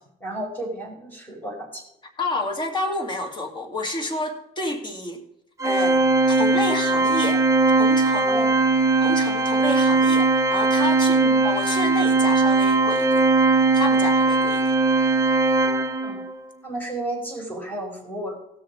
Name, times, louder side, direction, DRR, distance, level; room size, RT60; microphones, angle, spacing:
voice 1, 0.2-1.8 8.3-8.5 11.1-11.3 16.0-16.2 16.6-18.4, right 1 dB, 10° left, 0 dB, 5.1 m, -32 dB
voice 2, 2.2-5.2 5.6-7.4 7.8-8.4 9.0-13.2 13.7-14.6, left 2 dB, 25° left, 4 dB, 2.3 m, -29 dB
Organ, 5.6-16.3, right 3 dB, 20° right, 0.8 m, -19 dB
17.0 x 6.6 x 4.8 m, 0.79 s
cardioid pair, 110°, 17 cm